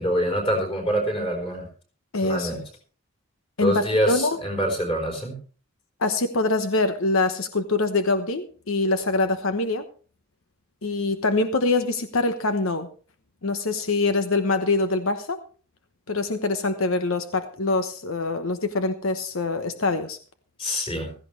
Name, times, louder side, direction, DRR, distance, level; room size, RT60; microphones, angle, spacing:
voice 1, 0.0-1.7 2.2-2.6 3.6-5.4 20.6-21.1, equal, 25° left, 1 dB, 4.4 m, -25 dB
voice 2, 2.1-2.6 3.6-4.4 6.0-9.8 10.8-12.9 13.4-15.4 16.1-20.2, left 3 dB, 80° left, 9 dB, 1.0 m, -24 dB
16.0 x 14.5 x 3.3 m, 0.39 s
head